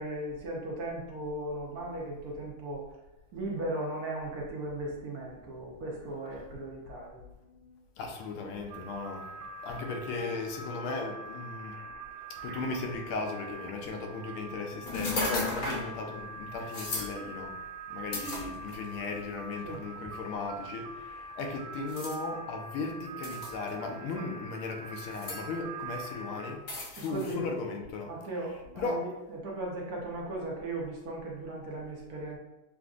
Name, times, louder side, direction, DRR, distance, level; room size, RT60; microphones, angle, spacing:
voice 1, 0.0-2.8 3.3-7.2 19.6-19.8 26.9-27.4 28.1-32.4, right 1 dB, 60° right, -2 dB, 1.1 m, -37 dB
voice 2, 7.6-9.3 9.6-11.7 12.3-17.5 17.9-28.1 28.8-29.1, left 3 dB, 80° left, 3 dB, 1.5 m, -37 dB
sound 1, 8.7-26.5, right 2 dB, 85° right, 1.5 m, -44 dB
sound 2, 14.9-15.9 16.7-17.1 18.1-19.0 19.7-19.8 21.9-22.2 23.2-23.7 25.0-25.4 26.7-27.3, left 2 dB, 55° left, 1.1 m, -34 dB
6.8 x 2.5 x 2.4 m, 0.99 s
omnidirectional pair, 2.4 m